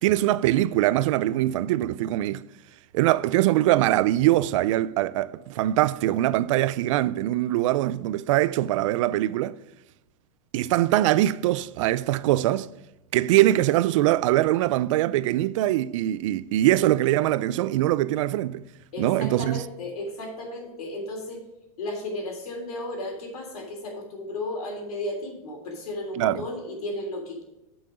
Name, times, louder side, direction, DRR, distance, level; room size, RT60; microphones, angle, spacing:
voice 1, 0.0-2.4 2.9-9.6 10.5-12.7 13.1-18.6 19.0-19.6 26.2-26.4, right 14 dB, 60° right, 0.4 m, -22 dB
voice 2, 18.9-21.4 21.8-27.4, left 1 dB, 90° left, 3.2 m, -34 dB
9.3 x 5.7 x 5.0 m
supercardioid pair, 150°, 19 cm